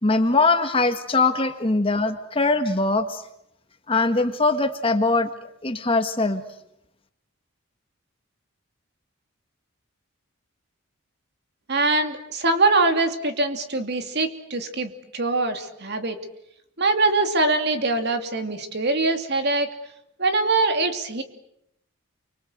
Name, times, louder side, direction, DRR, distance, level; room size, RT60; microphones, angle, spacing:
voice 1, 0.0-3.2 3.9-5.3 5.6-6.4, left 3 dB, 25° left, 8 dB, 1.7 m, -21 dB
voice 2, 11.7-16.2 16.8-19.7 20.2-21.2, right 3 dB, 50° right, 7 dB, 2.8 m, -23 dB
29.0 x 25.0 x 8.0 m, 0.78 s
head